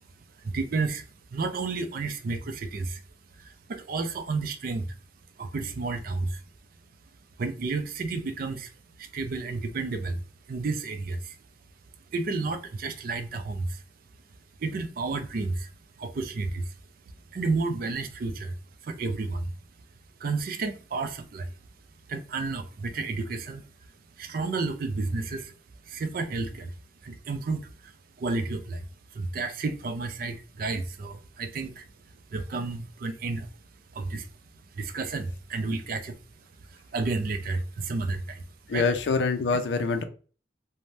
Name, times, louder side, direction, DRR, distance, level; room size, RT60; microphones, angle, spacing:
voice 1, 0.4-1.0 1.3-3.0 3.4-5.0 5.4-6.4 7.4-8.7 9.0-10.2 10.5-11.4 12.1-13.8 14.6-15.7 16.0-16.7 17.3-18.6 18.8-19.5 20.2-21.5 22.1-23.6 24.2-25.5 25.9-26.8 27.0-27.9 28.2-28.9 29.1-31.9 32.3-33.5 33.9-34.3 34.7-36.2 36.7-38.9, right 3 dB, 50° right, 0.4 m, -31 dB
voice 2, 38.7-40.0, left 4 dB, 70° left, 0.4 m, -25 dB
2.6 x 2.1 x 3.2 m
head